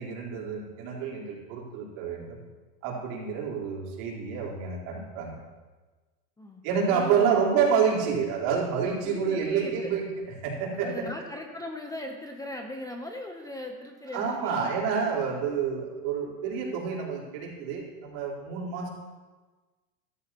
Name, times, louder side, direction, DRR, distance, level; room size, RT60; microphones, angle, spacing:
voice 1, 0.0-2.4 2.8-5.4 6.6-10.0 10.4-11.0 14.1-18.9, right 6 dB, 55° right, -4 dB, 4.2 m, -28 dB
voice 2, 6.9-7.4 9.0-10.0 10.7-14.7, left 1 dB, 5° left, 3 dB, 0.8 m, -39 dB
15.0 x 13.0 x 3.0 m, 1.3 s
hypercardioid pair, 120°, 48 cm